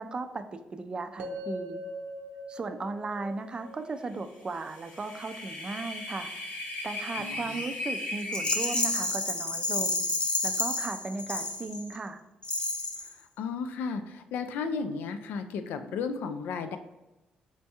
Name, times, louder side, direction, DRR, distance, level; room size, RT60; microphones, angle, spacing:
voice 1, 0.0-1.8 2.5-6.3 6.8-10.1 10.4-12.2, right 3 dB, 30° right, 9 dB, 0.4 m, -36 dB
sound 1, 1.2-5.3, equal, 90° right, 0.6 m, -41 dB
sound 2, 4.5-8.8, left 2 dB, 65° left, 1.0 m, -37 dB
voice 2, 7.2-7.5 13.4-16.8, left 5 dB, 85° left, 8 dB, 0.4 m, -34 dB
Rattle, 8.3-12.0 12.4-13.1, left 2 dB, 35° left, 0.7 m, -30 dB
4.3 x 3.4 x 2.8 m, 1.0 s
cardioid pair, 105°, 3 cm